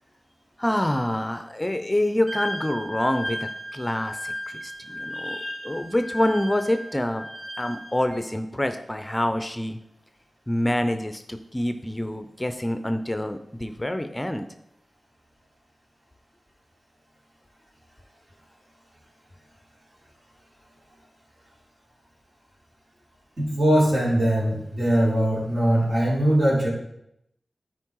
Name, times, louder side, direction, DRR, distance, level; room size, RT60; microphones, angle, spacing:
voice 1, 0.6-5.4 5.6-7.3 7.6-9.8 10.5-14.5, left 1 dB, 15° left, 8 dB, 0.6 m, -26 dB
Wind instrument woodwind instrument, 2.3-8.2, left 1 dB, 30° right, 3.2 m, -35 dB
voice 2, 5.1-5.6 23.4-26.7, right 1 dB, 60° right, -5 dB, 3.6 m, -22 dB
9.6 x 4.7 x 4.7 m, 0.80 s
cardioid pair, 45°, 0 cm